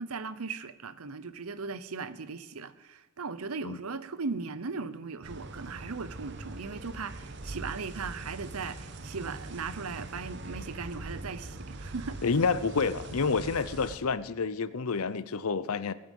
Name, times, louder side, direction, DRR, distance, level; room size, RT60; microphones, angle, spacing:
voice 1, 0.0-12.2, right 4 dB, 90° right, 15 dB, 0.8 m, -38 dB
sound 1, 5.2-14.0, right 2 dB, 55° right, 1.0 m, -42 dB
voice 2, 12.2-15.9, left 4 dB, 85° left, 16 dB, 0.7 m, -29 dB
19.0 x 8.8 x 5.5 m, 1.1 s
head